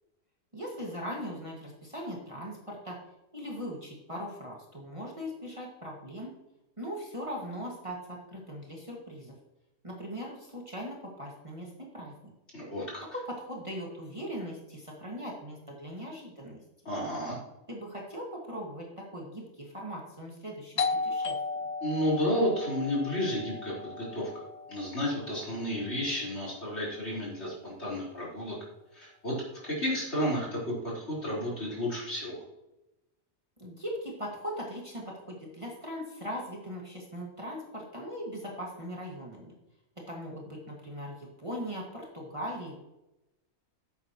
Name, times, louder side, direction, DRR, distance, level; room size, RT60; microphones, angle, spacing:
voice 1, 0.5-3.0 3.3-6.3 6.8-9.3 9.8-12.1 13.1-16.6 17.7-21.4 33.6-39.5 40.1-42.8, equal, 25° right, -3 dB, 1.9 m, -39 dB
voice 2, 12.5-13.0 16.8-17.4 21.8-24.4 24.7-28.6 28.9-32.4, equal, 55° left, -6 dB, 4.5 m, -32 dB
Doorbell, 20.8-26.2, left 4 dB, 70° left, 0.3 m, -35 dB
11.5 x 8.5 x 3.0 m, 0.93 s
omnidirectional pair, 1.4 m